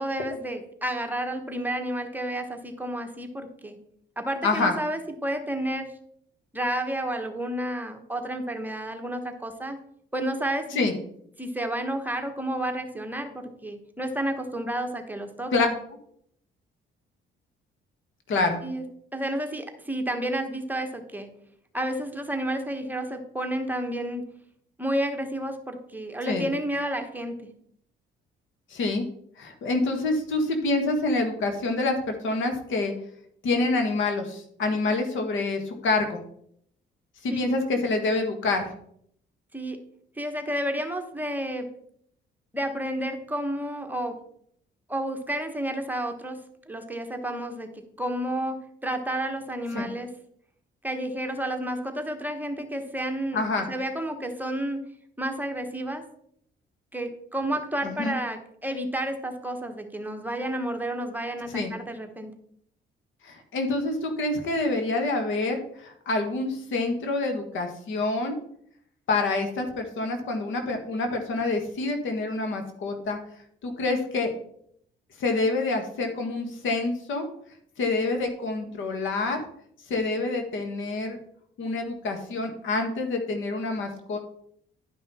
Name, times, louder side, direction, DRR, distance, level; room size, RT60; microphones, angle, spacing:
voice 1, 0.0-3.8 4.2-5.9 6.5-9.8 10.1-10.8 11.4-15.5 18.6-18.8 19.1-21.3 21.7-24.2 24.8-27.5 37.3-37.4 39.5-39.8 40.2-41.7 42.5-44.2 44.9-46.4 46.7-47.7 48.0-50.1 50.8-53.4 53.7-54.8 55.2-56.0 56.9-62.3, right 1 dB, 10° right, 5 dB, 1.3 m, -31 dB
voice 2, 4.4-4.7 10.7-10.9 15.5-15.7 18.3-18.6 26.3-26.5 28.7-29.0 29.4-32.9 33.4-36.2 37.2-38.7 49.7-49.9 53.3-53.7 57.8-58.2 61.5-61.7 63.2-68.4 69.1-73.2 73.6-74.3 75.2-77.3 77.8-79.4 79.9-81.2 81.6-84.2, left 3 dB, 75° left, 5 dB, 1.7 m, -27 dB
11.0 x 5.5 x 4.3 m, 0.67 s
cardioid pair, 90°, 20 cm